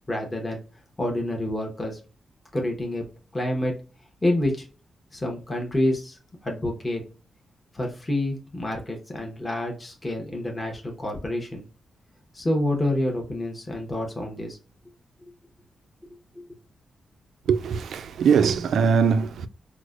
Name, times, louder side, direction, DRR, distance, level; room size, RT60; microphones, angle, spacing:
voice 1, 0.1-0.6 1.0-2.0 2.5-3.0 3.3-3.7 4.2-4.7 5.1-7.0 7.7-11.6 12.3-14.6 16.4-16.5, left 1 dB, 15° left, 0.8 m, -28 dB
voice 2, 17.5-19.5, right 6 dB, 85° right, 0.3 m, -21 dB
4.8 x 2.1 x 2.3 m
wide cardioid pair, 145°, 0 cm